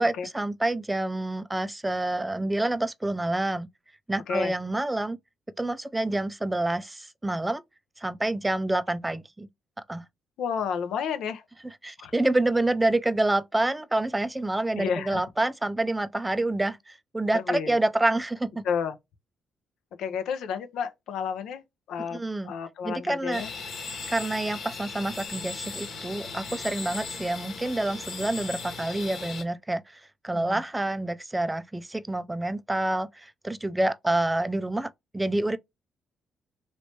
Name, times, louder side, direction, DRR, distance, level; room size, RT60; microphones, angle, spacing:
voice 1, 0.0-3.7 4.1-5.2 5.6-7.6 8.0-9.5 9.9-10.0 11.6-18.6 22.1-22.5 22.8-23.4 24.1-35.6, right 2 dB, 10° right, 0.3 m, -27 dB
voice 2, 10.4-11.4 12.0-12.1 14.8-15.2 17.3-17.7 18.6-18.9 20.0-21.6 21.9-22.2 22.4-23.5 30.3-30.6, left 7 dB, 80° left, 0.6 m, -31 dB
sound 1, 23.3-29.4, left 4 dB, 60° left, 1.1 m, -37 dB
3.1 x 3.1 x 2.8 m
cardioid pair, 90°, 0 cm